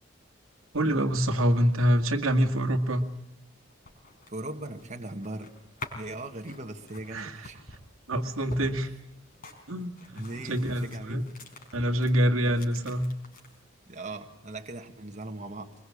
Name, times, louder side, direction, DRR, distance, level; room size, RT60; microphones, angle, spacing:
voice 1, 0.7-3.0 7.1-7.4 8.1-8.9 9.7-11.2 11.7-13.1, equal, 90° right, 4 dB, 2.2 m, -26 dB
sound 1, 3.7-12.1 12.4-13.6, left 2 dB, 45° left, 4.6 m, -47 dB
voice 2, 4.3-5.5 5.9-7.6 10.1-11.3 12.4-12.6 13.8-15.7, right 2 dB, 35° right, 4 dB, 1.7 m, -39 dB
22.5 x 21.5 x 8.6 m, 0.83 s
head